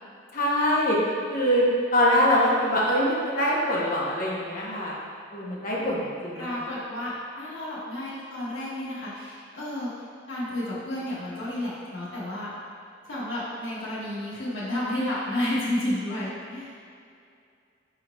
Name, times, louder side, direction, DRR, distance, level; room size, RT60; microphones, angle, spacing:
voice 1, 0.3-1.0 1.3-1.7 1.9-5.0 5.3-6.7, equal, 45° left, -4 dB, 0.8 m, -24 dB
voice 2, 6.4-9.9 10.3-12.5 13.0-16.7, left 1 dB, 80° left, -8 dB, 1.3 m, -31 dB
4.6 x 4.5 x 2.2 m, 2.4 s
head